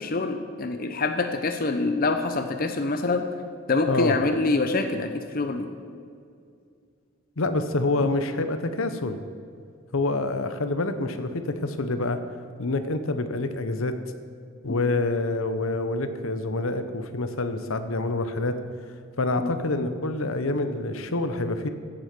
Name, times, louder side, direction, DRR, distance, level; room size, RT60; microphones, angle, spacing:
voice 1, 0.0-3.2 3.7-5.7 8.0-8.1 14.7-14.8 19.4-19.5, left 3 dB, 45° left, 6 dB, 0.8 m, -25 dB
voice 2, 7.4-9.2 9.9-12.2 12.6-14.0 14.6-18.6 19.2-21.7, left 2 dB, 75° left, 9 dB, 0.9 m, -27 dB
15.5 x 7.8 x 6.1 m, 2.3 s
head